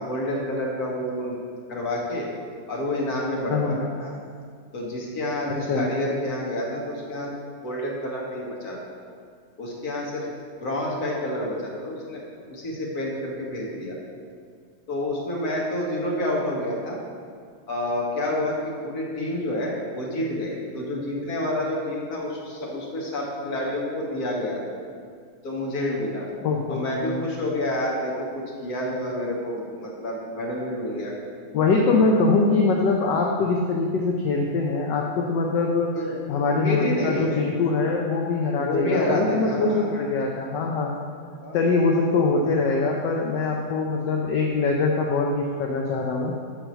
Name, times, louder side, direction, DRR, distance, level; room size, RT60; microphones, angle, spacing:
voice 1, 0.0-1.4 1.7-2.3 2.7-4.1 4.7-7.3 7.6-8.8 9.6-10.3 10.6-14.0 14.9-17.0 17.7-24.6 25.4-26.3 26.7-31.1 35.9-37.4 38.6-39.9 41.4-41.6, left 1 dB, 50° left, -3 dB, 1.7 m, -28 dB
voice 2, 3.5-3.8 5.7-5.9 26.4-27.2 31.5-40.9 41.5-46.3, left 3 dB, 70° left, 0 dB, 1.2 m, -23 dB
6.1 x 4.9 x 6.8 m, 2.1 s
omnidirectional pair, 2.3 m